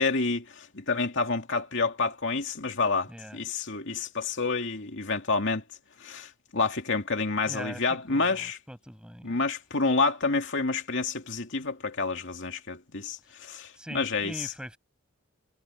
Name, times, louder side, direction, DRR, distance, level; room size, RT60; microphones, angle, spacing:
voice 1, 0.0-5.6 6.0-8.6 9.2-14.5, left 4 dB, 60° left, 2.5 m, -29 dB
voice 2, 3.1-3.4 7.5-7.8 8.1-9.4 13.8-14.8, equal, 5° right, 6.7 m, -41 dB
head